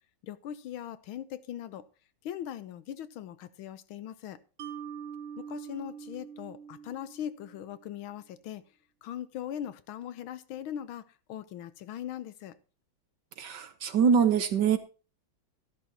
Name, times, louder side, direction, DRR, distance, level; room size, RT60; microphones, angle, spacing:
voice 1, 0.2-1.9 2.2-4.4 5.4-8.6 9.0-12.5, left 10 dB, 85° left, 1.6 m, -40 dB
Mallet percussion, 4.6-7.9, right 7 dB, 85° right, 1.7 m, -44 dB
voice 2, 13.4-14.8, right 7 dB, 65° right, 1.5 m, -24 dB
13.5 x 12.5 x 2.9 m
omnidirectional pair, 2.2 m